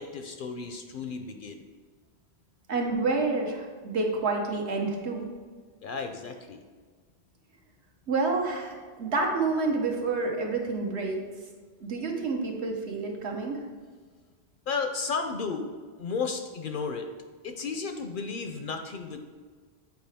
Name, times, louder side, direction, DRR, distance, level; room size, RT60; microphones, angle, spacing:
voice 1, 0.0-1.7 5.8-6.7 14.7-15.7 16.0-17.1 17.4-19.2, left 4 dB, 60° left, 6 dB, 0.6 m, -33 dB
voice 2, 2.7-5.3 8.1-11.2 11.8-13.6, right 3 dB, 75° right, 1 dB, 1.3 m, -28 dB
7.8 x 4.6 x 3.4 m, 1.5 s
omnidirectional pair, 1.1 m